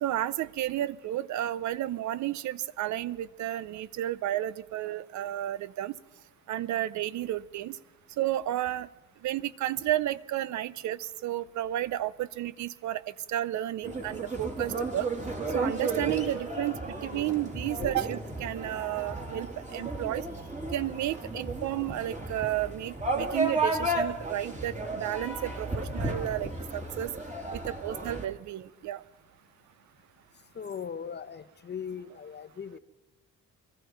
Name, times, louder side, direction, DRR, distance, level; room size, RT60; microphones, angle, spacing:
voice 1, 0.0-6.0 6.5-7.8 8.2-8.9 9.2-15.1 15.5-20.2 20.7-27.1 27.5-29.0, right 13 dB, 70° right, 18 dB, 0.6 m, -32 dB
sound 1, 13.8-28.3, right 2 dB, 25° right, 2.3 m, -33 dB
voice 2, 30.6-32.8, left 7 dB, 35° left, 13 dB, 0.7 m, -39 dB
22.0 x 13.0 x 4.5 m, 1.1 s
cardioid pair, 90°, 30 cm